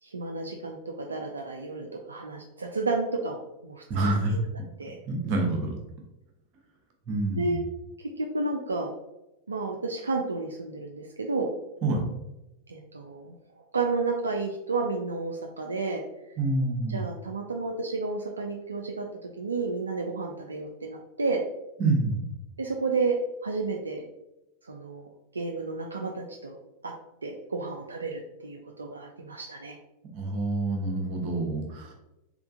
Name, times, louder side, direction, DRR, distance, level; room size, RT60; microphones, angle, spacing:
voice 1, 0.0-4.4 4.8-5.0 7.4-7.6 8.2-8.9 9.5-11.5 12.7-13.3 13.7-16.0 16.9-19.0 19.4-21.4 22.6-23.2 23.4-24.1 24.7-25.1 25.3-26.6 26.8-26.9 27.2-29.8, right 3 dB, 75° right, 1 dB, 0.3 m, -31 dB
voice 2, 3.9-4.4 5.0-5.7 7.1-7.6 11.8-12.0 16.4-17.0 21.8-22.3 30.1-31.9, right 2 dB, 40° right, 1 dB, 0.9 m, -27 dB
3.5 x 3.1 x 2.4 m, 0.94 s
figure-of-eight pair, 90°, 0 cm